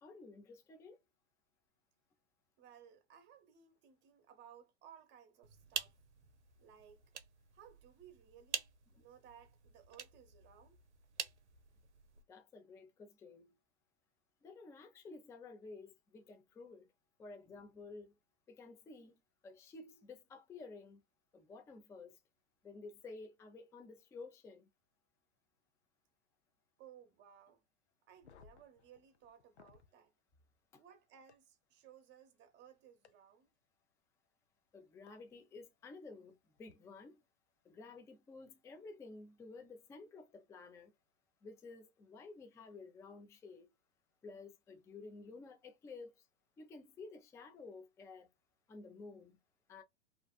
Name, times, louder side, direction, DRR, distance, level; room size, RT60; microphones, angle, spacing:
voice 1, 0.0-1.0 9.0-9.1 12.3-13.5 14.4-16.9 17.2-18.1 18.5-19.2 19.4-21.0 21.3-22.2 22.6-24.7 30.7-30.8 34.7-37.2 37.6-40.9 41.4-43.7 44.2-46.2 46.6-48.3 48.7-49.4 49.7-49.8, left 3 dB, 10° left, 0.4 m, -53 dB
voice 2, 2.6-6.0 6.6-7.1 7.5-8.7 9.0-10.8 26.8-27.6 28.0-30.1 30.8-33.5, right 9 dB, 30° right, 0.8 m, -60 dB
sound 1, 5.4-12.3, right 7 dB, 90° right, 0.6 m, -47 dB
sound 2, 28.1-29.9 31.3-31.4 33.0-33.1 35.1-35.2 36.6-36.7, left 7 dB, 80° left, 0.6 m, -63 dB
2.5 x 2.3 x 2.2 m
hypercardioid pair, 100°, 33 cm